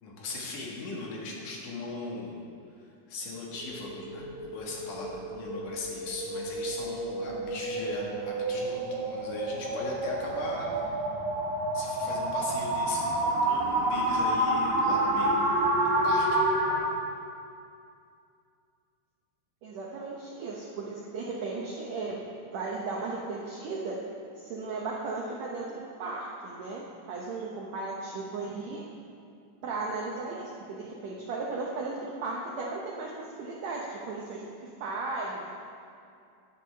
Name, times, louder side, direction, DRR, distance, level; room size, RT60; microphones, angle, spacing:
voice 1, 0.0-2.4 3.1-4.3 4.5-11.0 11.7-16.5, left 2 dB, 65° left, -3 dB, 2.8 m, -38 dB
sound 1, 3.5-16.8, right 1 dB, 60° right, 2.9 m, -29 dB
voice 2, 19.6-22.2 22.5-24.0 24.4-28.8 29.6-33.1 33.4-35.4, right 3 dB, 75° right, -2 dB, 1.6 m, -36 dB
12.5 x 10.5 x 3.3 m, 2.4 s
omnidirectional pair, 4.2 m